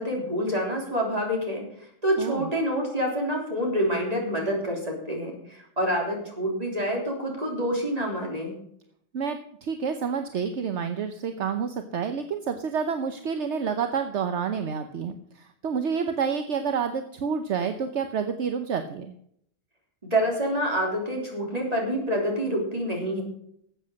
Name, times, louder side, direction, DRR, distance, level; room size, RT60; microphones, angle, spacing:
voice 1, 0.0-1.6 2.0-8.5 20.0-23.2, equal, 30° right, -1 dB, 3.6 m, -27 dB
voice 2, 2.2-2.5 9.1-19.1, right 6 dB, 70° right, 7 dB, 1.2 m, -29 dB
13.5 x 8.0 x 6.4 m, 0.70 s
omnidirectional pair, 1.3 m